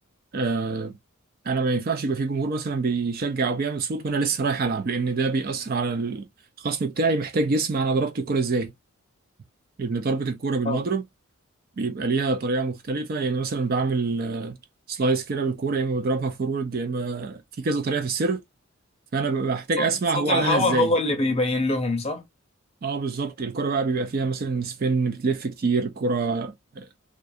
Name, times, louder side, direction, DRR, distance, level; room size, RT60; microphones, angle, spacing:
voice 1, 0.3-1.0 1.5-6.3 6.6-8.7 9.8-11.0 11.8-14.6 14.9-18.4 19.1-20.9 22.8-26.9, right 4 dB, 40° right, 0.4 m, -25 dB
voice 2, 20.1-22.2, left 2 dB, 30° left, 0.6 m, -23 dB
2.3 x 2.3 x 2.6 m
head